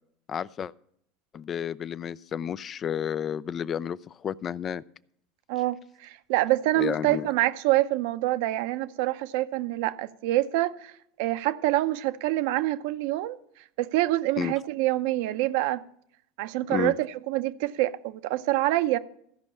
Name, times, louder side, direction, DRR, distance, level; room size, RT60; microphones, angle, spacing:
voice 1, 0.3-0.7 1.3-4.8 6.8-7.3 14.4-14.5 16.7-16.9, left 8 dB, 35° left, 0.4 m, -31 dB
voice 2, 5.5-10.9 11.2-13.4 13.8-15.8 16.4-19.0, right 16 dB, 70° right, 0.7 m, -26 dB
14.5 x 5.3 x 7.1 m
hypercardioid pair, 105°, 0 cm